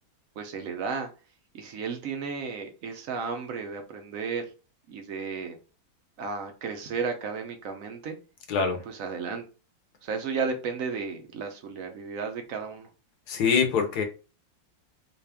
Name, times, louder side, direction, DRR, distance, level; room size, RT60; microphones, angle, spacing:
voice 1, 0.4-1.1 1.5-4.5 4.9-5.6 6.2-8.2 8.8-9.4 10.0-12.9, right 5 dB, 75° right, 5 dB, 0.7 m, -33 dB
voice 2, 8.5-8.8 13.3-14.0, left 6 dB, 65° left, 4 dB, 1.1 m, -24 dB
4.1 x 2.3 x 3.4 m, 0.33 s
omnidirectional pair, 2.2 m